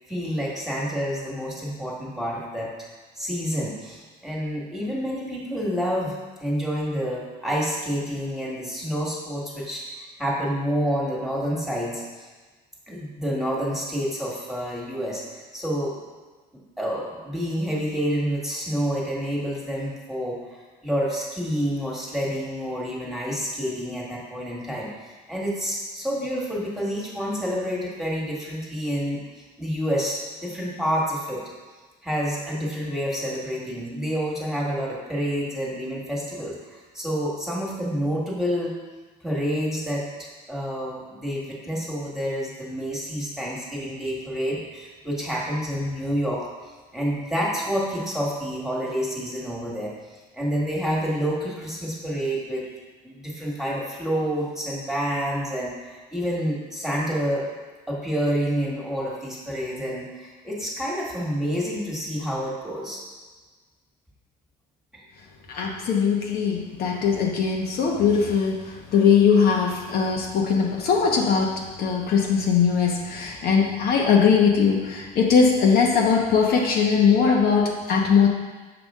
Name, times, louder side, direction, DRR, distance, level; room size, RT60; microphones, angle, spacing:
voice 1, 0.1-2.7 3.1-12.3 12.9-15.2 15.5-16.0 16.5-31.5 32.0-38.7 39.2-46.5 46.9-49.9 50.3-52.7 53.0-57.5 57.9-63.0 64.9-65.0, equal, ahead, -4 dB, 1.6 m, -28 dB
voice 2, 65.5-78.3, left 6 dB, 65° left, -1 dB, 1.0 m, -20 dB
7.0 x 5.0 x 3.6 m, 1.3 s
cardioid pair, 110°, 17 cm